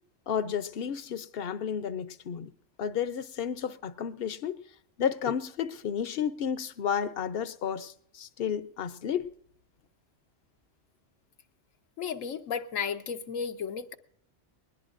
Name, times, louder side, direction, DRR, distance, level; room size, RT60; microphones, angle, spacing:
voice 1, 0.3-2.5 2.8-4.6 5.0-9.3, left 8 dB, 55° left, 0.8 m, -32 dB
voice 2, 12.0-13.9, left 6 dB, 90° left, 1.3 m, -33 dB
21.0 x 18.5 x 2.5 m
omnidirectional pair, 1.3 m